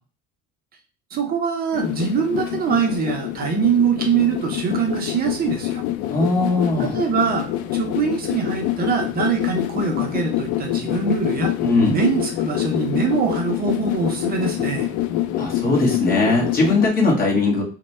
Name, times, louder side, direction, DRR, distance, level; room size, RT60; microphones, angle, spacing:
voice 1, 1.1-5.8 6.8-11.5 11.9-14.9, right 6 dB, 30° right, 3 dB, 0.6 m, -23 dB
sound 1, 1.7-16.9, left 13 dB, 75° left, 0.5 m, -26 dB
voice 2, 6.1-6.9 11.6-11.9 15.4-17.6, left 3 dB, 30° left, -1 dB, 1.3 m, -19 dB
3.1 x 2.2 x 4.1 m, 0.37 s
cardioid pair, 150°, 30 cm